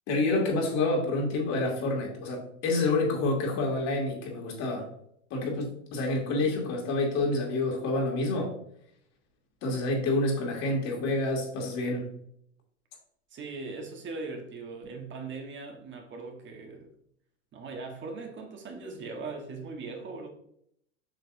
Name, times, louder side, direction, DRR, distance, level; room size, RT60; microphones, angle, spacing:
voice 1, 0.1-4.9 5.3-8.5 9.6-12.1, left 2 dB, 45° left, 2.6 m, -28 dB
voice 2, 13.3-16.9 17.5-20.3, right 3 dB, 30° right, 1.5 m, -40 dB
7.8 x 5.8 x 2.7 m
hypercardioid pair, 100°, 36 cm